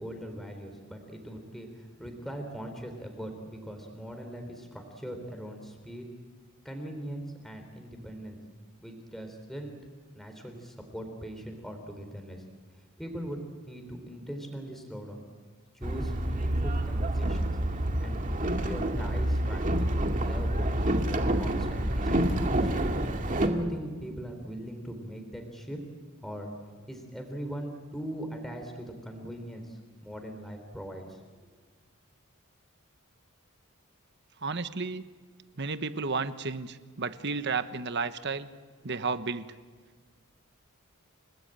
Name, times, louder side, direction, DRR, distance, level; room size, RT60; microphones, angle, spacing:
voice 1, 0.0-6.1 6.6-8.4 8.8-9.8 10.1-12.4 13.0-13.4 13.7-15.2 15.7-18.2 18.6-19.9 20.2-20.8 21.1-22.9 23.4-25.8 26.2-26.5 26.9-31.2, equal, ahead, 4 dB, 3.6 m, -40 dB
Boat Water vehicle, 15.8-23.5, right 1 dB, 35° right, 2.1 m, -28 dB
voice 2, 34.4-35.0 35.6-38.5 38.8-39.5, right 4 dB, 50° right, 11 dB, 1.1 m, -32 dB
30.0 x 19.0 x 9.0 m, 1.5 s
head